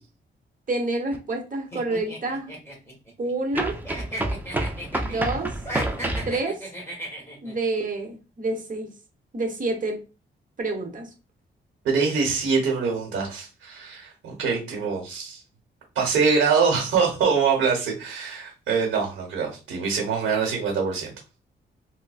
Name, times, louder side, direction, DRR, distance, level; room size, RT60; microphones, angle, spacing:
voice 1, 0.7-2.5 3.2-3.8 5.0-5.5 6.3-6.6 7.4-8.9 9.3-10.0 10.6-11.1, right 2 dB, 45° right, 3 dB, 1.0 m, -28 dB
sound 1, 1.1-1.2 3.5-6.4, right 1 dB, 10° right, 0.4 m, -28 dB
sound 2, 1.7-3.6 3.8-5.2 5.6-7.5, right 1 dB, 15° left, 1.7 m, -36 dB
voice 2, 11.8-15.4 15.9-21.1, right 5 dB, 90° right, 0 dB, 1.1 m, -24 dB
3.8 x 2.1 x 2.4 m, 0.31 s
cardioid pair, 90°, 20 cm